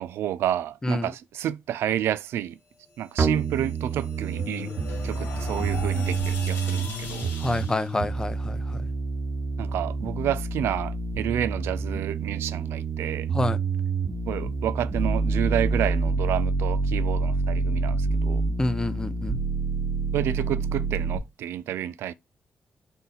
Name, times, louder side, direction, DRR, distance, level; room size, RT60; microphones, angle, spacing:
voice 1, 0.0-2.6 3.0-4.7 5.0-7.3 9.6-13.3 14.3-18.4 20.1-22.1, right 11 dB, 85° right, 0.3 m, -30 dB
sound 1, 3.2-21.2, right 4 dB, 50° right, 1.1 m, -27 dB
sound 2, 3.4-7.9, left 4 dB, 80° left, 1.6 m, -38 dB
voice 2, 7.4-8.8 13.3-13.6 18.6-19.4, left 1 dB, 15° left, 0.6 m, -27 dB
3.8 x 2.6 x 4.1 m
cardioid pair, 85°, 4 cm